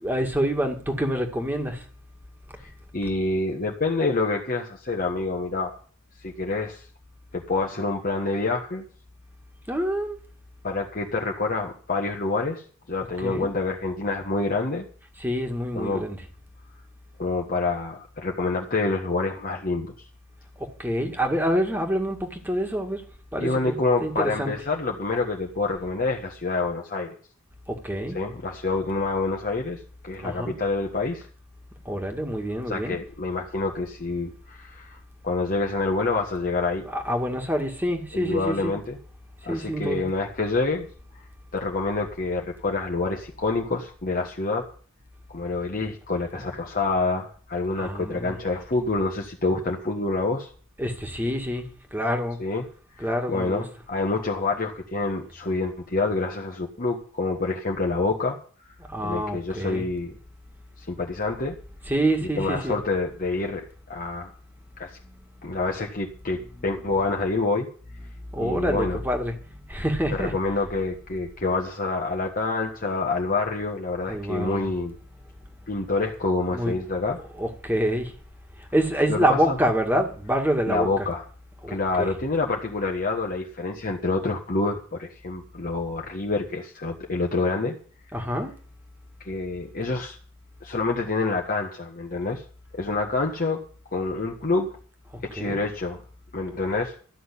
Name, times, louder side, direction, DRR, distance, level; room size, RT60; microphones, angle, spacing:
voice 1, 0.0-1.9 9.7-10.2 13.2-13.5 15.2-16.2 20.6-23.1 23.3-23.7 24.0-24.5 27.7-28.2 30.2-30.6 31.9-33.0 36.9-38.7 39.4-40.1 47.8-48.4 50.8-52.4 53.0-53.6 58.9-59.8 61.9-62.8 65.0-65.1 66.6-66.7 68.3-69.4 69.7-70.3 74.1-74.7 76.5-76.8 77.2-78.2 78.6-80.9 81.6-82.2 88.1-88.6 95.1-95.6, equal, 10° right, 2.1 m, -27 dB
voice 2, 2.6-5.7 6.2-6.8 7.3-8.8 10.6-12.6 12.9-14.8 15.7-16.0 17.2-19.9 23.4-27.1 28.1-31.3 32.7-36.8 38.1-39.0 39.4-40.9 41.5-44.7 45.3-50.5 52.4-52.6 53.0-58.4 59.0-60.2 60.8-61.6 62.3-64.3 64.8-65.0 65.4-67.7 68.4-69.0 70.1-75.0 75.7-77.2 79.1-79.6 80.7-81.2 81.7-87.8 89.2-90.2 90.6-92.4 92.8-93.6 93.9-94.8 95.2-96.0 96.3-97.0, left 3 dB, 40° left, 1.4 m, -27 dB
13.5 x 6.3 x 9.8 m
head